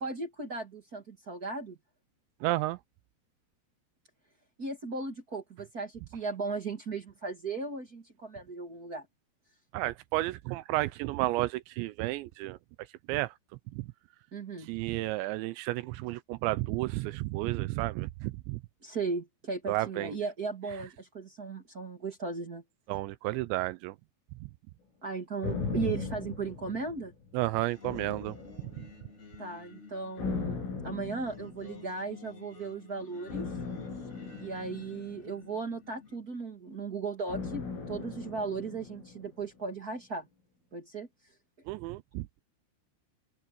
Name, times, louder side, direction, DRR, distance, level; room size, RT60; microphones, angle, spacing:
voice 1, 0.0-1.8 4.6-9.0 14.3-14.7 18.8-22.6 25.0-27.1 29.4-33.5 34.4-40.3 40.7-41.1, right 4 dB, 70° right, 0.8 m, -36 dB
voice 2, 2.4-2.8 9.7-12.6 13.1-13.3 13.7-13.8 14.7-18.6 19.7-20.1 22.9-24.0 27.3-28.4 28.8-28.9 41.7-42.4, right 18 dB, 85° right, 2.5 m, -32 dB
sound 1, 25.4-27.3 27.8-29.1 30.2-31.9 33.3-35.7 37.3-39.5 39.7-39.8, left 5 dB, 75° left, 9.7 m, -38 dB
Singing, 27.7-36.2, left 5 dB, 15° left, 2.7 m, -52 dB
open air
omnidirectional pair, 5.8 m